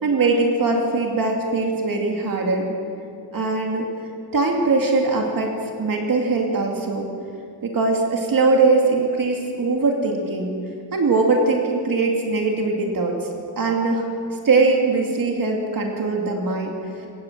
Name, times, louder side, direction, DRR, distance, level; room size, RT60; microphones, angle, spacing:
voice 1, 0.0-2.7 3.3-3.9 4.3-7.1 7.6-10.5 10.9-13.3 13.6-14.1 14.4-17.1, right 3 dB, 60° right, 1 dB, 2.7 m, -21 dB
25.0 x 18.5 x 7.5 m, 2.5 s
wide cardioid pair, 170°, 39 cm